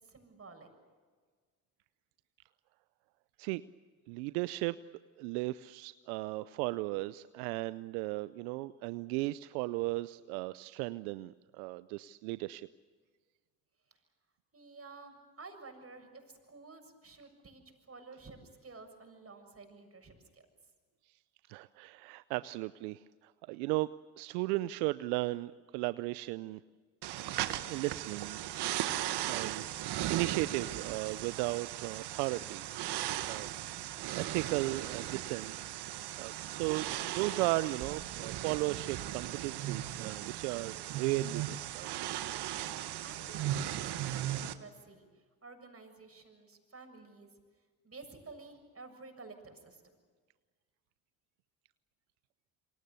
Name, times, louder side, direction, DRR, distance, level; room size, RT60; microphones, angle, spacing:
voice 1, 0.0-0.7 13.9-14.0 14.5-20.5 42.7-47.3 47.8-49.8, right 3 dB, 30° right, 5 dB, 7.1 m, -52 dB
voice 2, 4.1-4.8 5.2-12.7 21.5-23.9 24.2-26.6 27.7-29.6 30.1-32.6 33.2-33.5 34.1-42.1, right 20 dB, 80° right, 16 dB, 0.6 m, -36 dB
sound 1, 27.0-44.5, right 12 dB, 65° right, 1.5 m, -37 dB
27.5 x 24.5 x 6.9 m, 1.5 s
hypercardioid pair, 55°, 43 cm